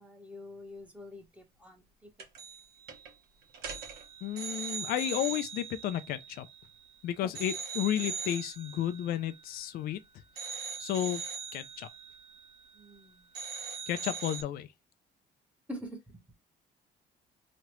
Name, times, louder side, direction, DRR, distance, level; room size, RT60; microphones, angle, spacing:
voice 1, 0.0-2.1 7.2-7.3 12.7-13.3 15.7-16.0, left 1 dB, 10° right, 1.0 m, -45 dB
sound 1, 2.2-2.6 2.9-3.1 3.5-6.9 7.4-10.0 10.4-13.0 13.3-14.4, right 6 dB, 70° right, 1.1 m, -41 dB
voice 2, 4.2-6.5 7.0-10.0 10.5-11.2 11.5-11.9 13.9-14.7, left 11 dB, 60° left, 0.4 m, -32 dB
3.1 x 2.4 x 3.0 m
cardioid pair, 110°, 17 cm